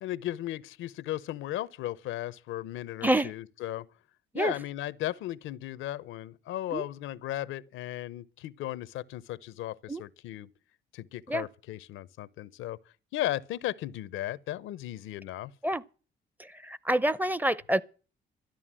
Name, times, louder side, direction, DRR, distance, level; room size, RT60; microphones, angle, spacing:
voice 1, 0.0-3.9 4.3-10.5 10.9-12.8 13.1-15.5, left 14 dB, 90° left, 0.7 m, -36 dB
voice 2, 3.0-3.3 4.3-4.5 6.7-6.8 9.9-10.0 11.3-11.5 15.6-15.8 16.4-17.8, right 1 dB, 10° right, 0.6 m, -27 dB
13.0 x 10.5 x 7.4 m
cardioid pair, 90°, 20 cm